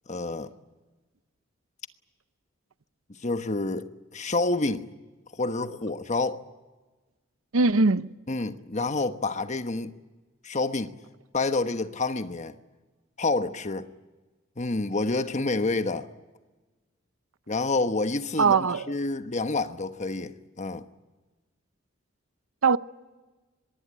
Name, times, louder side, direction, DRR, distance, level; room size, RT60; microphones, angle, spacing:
voice 1, 0.1-0.5 3.2-4.9 5.3-6.4 8.3-9.9 10.4-10.9 11.3-12.6 13.2-13.9 14.6-16.1 17.5-20.8, left 3 dB, 35° left, 1.1 m, -28 dB
voice 2, 7.5-8.1 18.4-18.8 22.6-22.8, right 4 dB, 85° right, 0.8 m, -20 dB
24.0 x 21.5 x 8.8 m
head